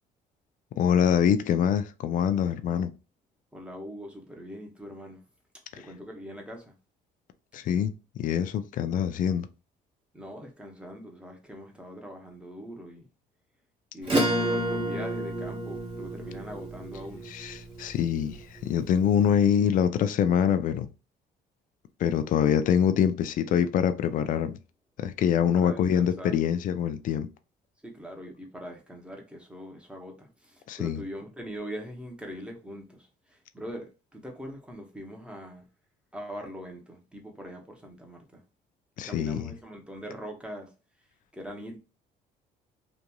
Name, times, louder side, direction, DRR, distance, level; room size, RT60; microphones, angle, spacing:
voice 1, 0.8-2.9 5.8-5.9 7.5-7.9 8.2-9.5 17.3-20.9 22.0-24.5 25.0-27.3 30.7-31.0 39.0-39.5, left 8 dB, 50° left, 0.4 m, -25 dB
voice 2, 3.5-5.2 5.8-6.7 10.1-13.1 13.9-17.3 25.5-26.3 27.8-35.7 36.1-38.4 39.1-40.7 41.3-41.8, equal, 5° right, 0.9 m, -42 dB
Acoustic guitar / Strum, 14.0-19.0, right 1 dB, 30° right, 1.3 m, -30 dB
3.0 x 2.5 x 2.2 m
cardioid pair, 110°, 17 cm